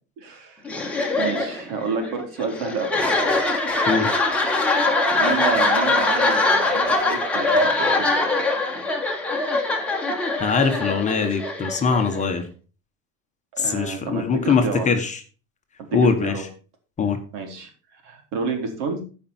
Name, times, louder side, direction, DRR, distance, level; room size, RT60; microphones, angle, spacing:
voice 1, 0.2-0.6 1.1-2.9 5.2-8.2 13.5-14.9 15.8-16.5 17.3-19.0, right 4 dB, 80° right, 4 dB, 3.6 m, -30 dB
sound 1, 0.6-12.3, left 2 dB, 5° left, 1.5 m, -22 dB
voice 2, 10.4-12.5 13.6-15.2 15.9-16.4 17.0-17.2, left 5 dB, 20° left, 6 dB, 1.1 m, -22 dB
14.5 x 5.4 x 4.4 m, 0.36 s
cardioid pair, 170°, 36 cm